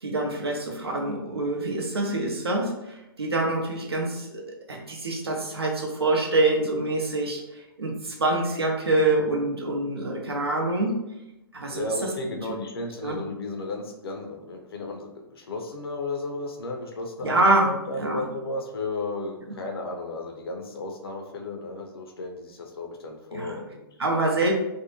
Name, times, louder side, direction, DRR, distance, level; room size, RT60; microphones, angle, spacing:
voice 1, 0.0-11.0 11.5-12.6 13.0-13.2 17.2-17.7 18.0-18.3 23.3-23.6 24.0-24.5, right 2 dB, 85° right, 0 dB, 0.7 m, -26 dB
voice 2, 11.7-24.3, left 2 dB, 75° left, 2 dB, 0.6 m, -34 dB
2.6 x 2.1 x 2.9 m, 0.91 s
figure-of-eight pair, 115°, 13 cm